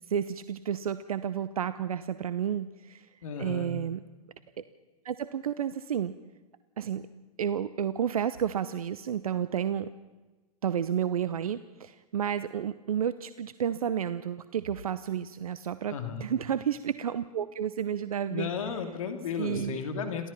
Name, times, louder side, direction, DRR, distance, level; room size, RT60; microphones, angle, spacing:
voice 1, 0.1-3.1 3.4-4.0 5.0-6.1 6.8-7.1 7.4-9.9 10.6-18.5 19.4-19.8, right 9 dB, 65° right, 14 dB, 0.8 m, -31 dB
voice 2, 3.2-3.7 15.9-16.3 18.3-20.3, left 6 dB, 60° left, 6 dB, 2.7 m, -34 dB
27.5 x 16.0 x 5.9 m, 1.2 s
figure-of-eight pair, 105°, 20 cm